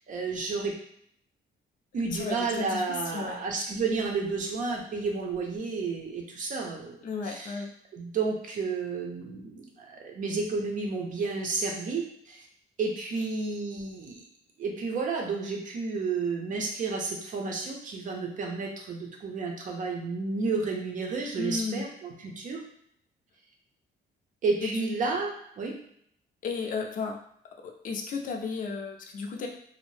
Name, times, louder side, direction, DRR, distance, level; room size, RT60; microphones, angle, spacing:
voice 1, 0.1-0.7 1.9-7.0 7.2-7.6 7.9-12.4 12.8-14.2 14.6-22.6 24.4-25.7, right 4 dB, 50° right, 0 dB, 0.6 m, -31 dB
voice 2, 2.1-3.4 7.0-7.7 21.3-21.9 24.6-24.9 26.4-27.2 27.6-29.5, left 4 dB, 50° left, 2 dB, 0.5 m, -33 dB
2.6 x 2.0 x 3.1 m, 0.69 s
cardioid pair, 150°, 17 cm